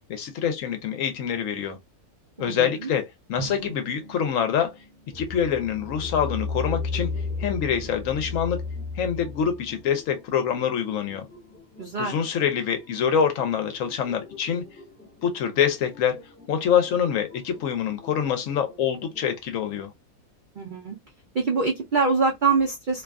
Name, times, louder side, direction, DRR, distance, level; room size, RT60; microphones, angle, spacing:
voice 1, 0.1-1.8 2.4-3.0 3.3-4.7 5.1-7.1 7.4-8.6 9.0-11.3 12.0-14.6 15.2-16.2 16.5-19.9, left 8 dB, 70° left, 0.9 m, -25 dB
voice 2, 2.4-2.7 11.8-12.1 20.6-21.0 21.3-23.0, right 4 dB, 80° right, 0.4 m, -24 dB
Drum, 3.4-6.0, right 5 dB, 65° right, 1.0 m, -43 dB
sound 1, 5.1-19.3, left 4 dB, 10° left, 0.6 m, -37 dB
2.5 x 2.3 x 2.2 m
omnidirectional pair, 1.6 m